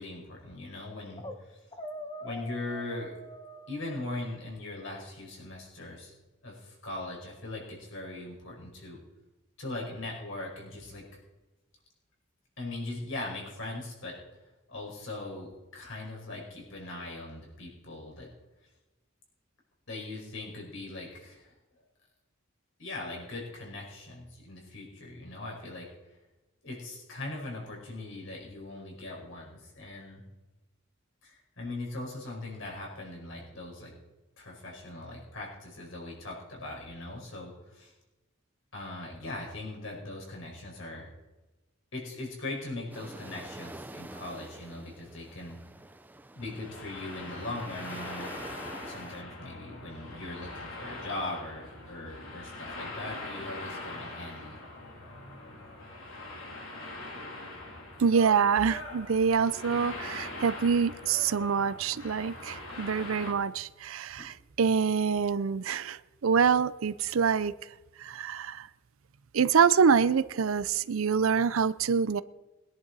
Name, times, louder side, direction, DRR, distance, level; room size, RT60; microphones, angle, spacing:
voice 1, 0.0-1.6 2.2-3.1 3.7-6.1 6.4-9.0 9.6-11.1 12.6-14.2 14.7-18.3 19.9-21.5 22.8-25.9 26.6-30.2 31.2-33.9 34.4-37.9 38.7-41.1 41.9-45.6 46.3-48.3 48.9-54.6 64.2-64.3, left 2 dB, 70° left, -2 dB, 5.1 m, -40 dB
sound 1, 1.2-1.4 1.7-4.5, equal, 20° left, 1.1 m, -44 dB
sound 2, 42.9-49.2, right 1 dB, 10° right, 0.4 m, -47 dB
sound 3, 46.4-63.3, left 2 dB, 85° left, 3.0 m, -42 dB
voice 2, 58.0-67.5 68.0-68.7 69.3-72.2, right 6 dB, 80° right, 16 dB, 0.5 m, -26 dB
21.5 x 10.5 x 4.1 m, 1.1 s
head